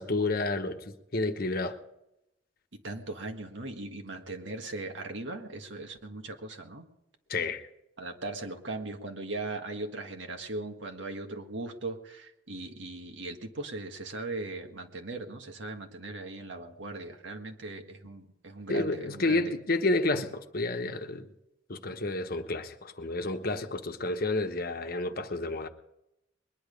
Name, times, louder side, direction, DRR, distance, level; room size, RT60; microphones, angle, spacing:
voice 1, 0.0-1.8 7.3-7.7 18.7-21.3 21.7-25.7, left 2 dB, 50° left, 1.1 m, -30 dB
voice 2, 2.7-6.9 8.0-19.5, right 2 dB, 75° right, 1.7 m, -39 dB
21.5 x 10.5 x 5.2 m
head